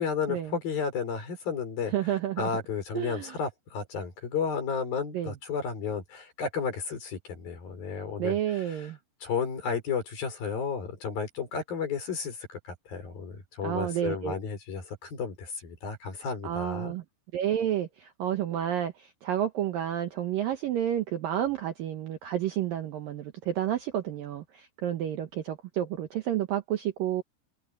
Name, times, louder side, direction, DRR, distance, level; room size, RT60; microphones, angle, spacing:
voice 1, 0.0-1.9 2.4-8.9 9.2-12.4 12.6-17.0, left 6 dB, 50° left, 7.1 m, -33 dB
voice 2, 1.9-2.5 2.9-3.3 5.1-5.3 8.2-9.0 13.6-14.3 16.4-17.0 17.3-27.2, right 11 dB, 70° right, 2.3 m, -30 dB
omnidirectional pair, 5.3 m